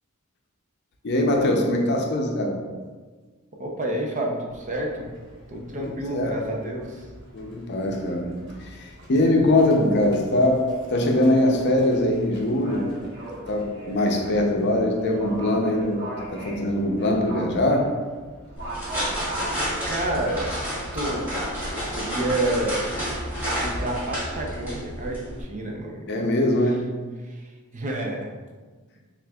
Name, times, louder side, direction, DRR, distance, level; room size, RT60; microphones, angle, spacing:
voice 1, 1.0-2.6 5.8-6.3 7.3-12.9 13.5-16.1 16.3-17.9 26.1-26.9, left 1 dB, 55° left, 2 dB, 0.5 m, -22 dB
voice 2, 3.6-5.1 5.5-7.1 19.9-20.6 20.9-21.3 21.7-23.0 23.6-26.0 27.2-28.3, right 1 dB, 35° right, 0 dB, 0.5 m, -29 dB
Livestock farm animals working animals, 4.5-23.8, right 1 dB, 55° right, 1.2 m, -41 dB
sound 1, 18.6-25.4, equal, 10° right, 1.4 m, -30 dB
6.1 x 2.5 x 2.3 m, 1.4 s
head